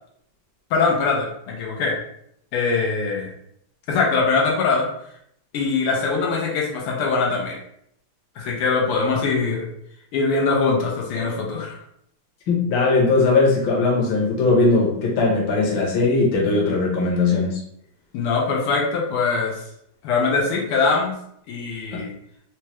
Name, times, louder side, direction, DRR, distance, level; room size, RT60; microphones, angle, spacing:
voice 1, 0.7-2.0 2.5-3.3 3.9-4.9 5.5-7.6 8.4-9.7 10.1-11.8 18.1-19.6 20.0-21.1 21.5-22.1, left 4 dB, 90° left, -2 dB, 1.6 m, -22 dB
voice 2, 12.5-17.6 21.9-22.0, left 3 dB, 65° left, -3 dB, 1.6 m, -19 dB
4.3 x 2.2 x 2.9 m, 0.71 s
omnidirectional pair, 2.4 m